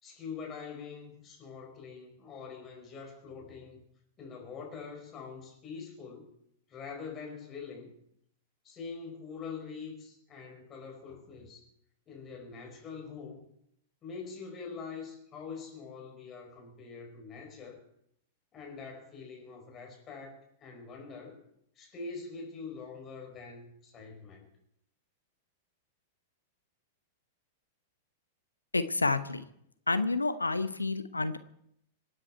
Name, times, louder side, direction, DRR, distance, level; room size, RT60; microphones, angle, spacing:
voice 1, 0.0-3.8 4.2-6.3 6.7-7.9 8.6-11.6 12.1-13.4 14.0-17.8 18.5-21.4 21.8-24.5, left 5 dB, 25° left, 1 dB, 5.2 m, -44 dB
voice 2, 28.7-29.5 29.9-31.4, left 3 dB, 80° left, 13 dB, 0.9 m, -29 dB
26.5 x 9.8 x 4.6 m, 0.75 s
figure-of-eight pair, 95°, 0 cm